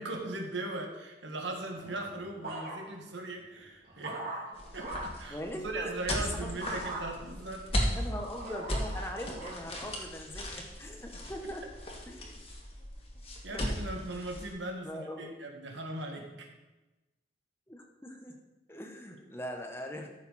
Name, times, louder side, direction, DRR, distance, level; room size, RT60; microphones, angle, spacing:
voice 1, 0.0-4.2 4.7-8.0 13.4-16.5, right 2 dB, 85° right, 2 dB, 1.8 m, -39 dB
sound 1, 1.7-3.1 3.6-5.2 6.6-7.0 7.7-9.6 10.3-10.6, right 2 dB, 55° right, 2.8 m, -42 dB
sound 2, 4.5-14.5, equal, 30° left, 1.9 m, -37 dB
voice 2, 5.3-6.8 7.9-11.6 12.1-12.4 13.5-13.6 14.8-15.3 17.7-18.4 18.7-20.1, equal, 15° left, 2 dB, 1.1 m, -41 dB
14.5 x 6.8 x 4.2 m, 1.1 s
head